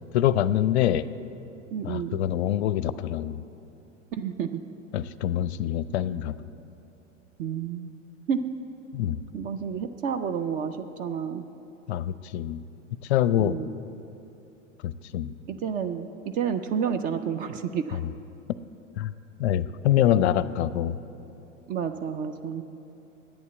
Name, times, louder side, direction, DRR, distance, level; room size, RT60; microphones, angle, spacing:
voice 1, 0.1-1.1 1.8-3.4 4.9-6.3 8.9-9.2 11.9-12.6 13.1-13.5 14.8-15.3 17.9-18.0 19.0-19.1 19.4-21.0, left 11 dB, 60° left, 16 dB, 0.5 m, -25 dB
voice 2, 1.7-2.2 4.1-4.6 7.4-7.9 8.3-8.4 9.3-11.4 13.4-13.7 15.5-18.0 21.7-22.6, right 7 dB, 25° right, 9 dB, 0.3 m, -30 dB
11.0 x 8.9 x 8.1 m, 2.9 s
figure-of-eight pair, 90°, 38 cm